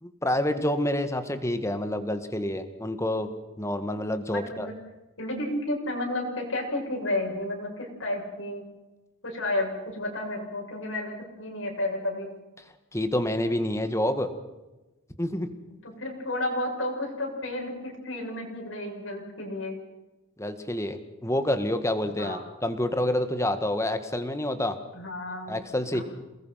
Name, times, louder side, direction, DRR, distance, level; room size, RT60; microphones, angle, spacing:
voice 1, 0.0-3.3 3.6-4.7 12.9-14.3 15.2-15.5 20.4-24.8 25.5-26.0, left 1 dB, 15° left, 9 dB, 1.9 m, -28 dB
voice 2, 4.3-4.7 5.2-8.6 9.2-12.3 15.8-19.7 22.2-22.4 24.9-25.6 25.9-26.0, left 1 dB, 80° left, -1 dB, 7.0 m, -32 dB
28.5 x 20.5 x 5.9 m, 1.1 s
head